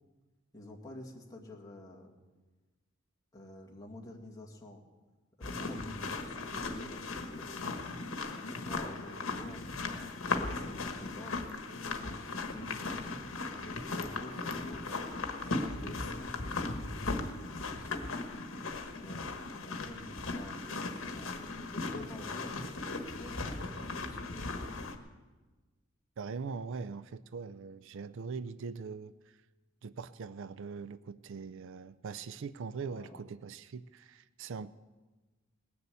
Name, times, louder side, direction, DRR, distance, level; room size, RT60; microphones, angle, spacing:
voice 1, 0.5-2.1 3.3-4.8 5.4-7.9 8.4-11.5 11.8-13.1 13.5-17.8 19.0-24.6 32.8-33.2, left 1 dB, 20° left, -2 dB, 2.1 m, -49 dB
sound 1, 5.4-25.0, left 3 dB, 75° left, 1.3 m, -37 dB
voice 2, 26.2-29.4 29.8-34.7, right 5 dB, 65° right, 15 dB, 0.4 m, -42 dB
19.5 x 7.0 x 8.2 m, 1.3 s
head